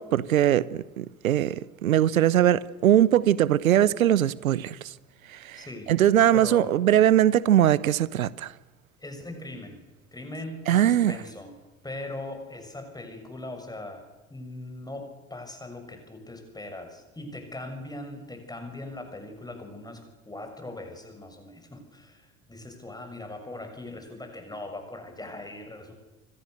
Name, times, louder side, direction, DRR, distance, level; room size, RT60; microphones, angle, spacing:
voice 1, 0.0-4.8 5.3-8.5 10.7-11.1, right 11 dB, 75° right, 1.0 m, -21 dB
voice 2, 5.5-5.9 6.3-6.8 9.0-9.9 10.1-11.5 11.8-25.9, left 2 dB, 10° left, 6.9 m, -40 dB
29.5 x 24.5 x 6.6 m
figure-of-eight pair, 75°, 42 cm